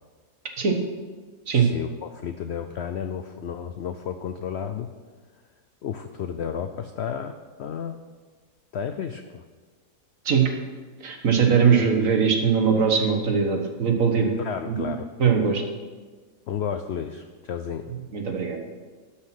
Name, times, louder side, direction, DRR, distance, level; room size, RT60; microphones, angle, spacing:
voice 1, 1.5-4.9 5.8-8.0 8.7-9.4 14.4-15.1 16.5-17.9, left 7 dB, 70° left, 8 dB, 0.6 m, -32 dB
voice 2, 11.0-14.3 14.7-14.9 15.2-15.6 18.1-18.6, right 6 dB, 55° right, 4 dB, 1.6 m, -21 dB
12.0 x 5.9 x 5.9 m, 1.4 s
omnidirectional pair, 1.7 m